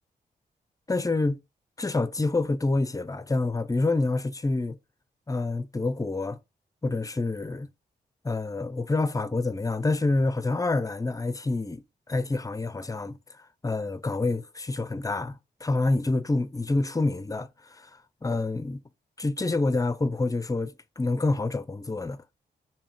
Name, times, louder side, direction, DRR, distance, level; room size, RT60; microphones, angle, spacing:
voice 1, 0.9-1.4 1.8-4.8 5.3-6.4 6.8-7.7 8.2-13.2 13.6-17.9 18.2-18.8 19.2-22.2, left 3 dB, 20° left, 0.5 m, -27 dB
3.4 x 2.7 x 3.4 m
cardioid pair, 55°, 19 cm